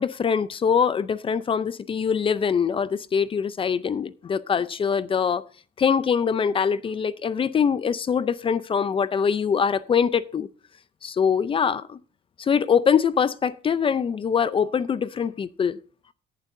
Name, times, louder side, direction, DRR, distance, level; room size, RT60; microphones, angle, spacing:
voice 1, 0.0-5.4 5.8-10.5 11.0-12.0 12.4-15.8, left 7 dB, 30° left, 0.5 m, -23 dB
17.5 x 7.5 x 2.6 m
cardioid pair, 110°, 17 cm